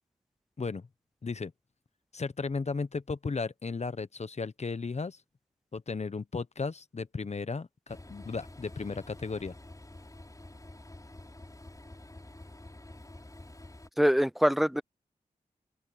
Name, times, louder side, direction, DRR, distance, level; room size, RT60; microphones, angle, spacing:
voice 1, 0.6-0.9 1.2-1.5 2.1-5.2 5.7-9.5, left 4 dB, 45° left, 1.0 m, -35 dB
Train, 7.9-13.9, left 1 dB, 20° left, 5.7 m, -49 dB
voice 2, 14.0-14.8, equal, ahead, 0.6 m, -24 dB
open air
cardioid pair, 45°, 15 cm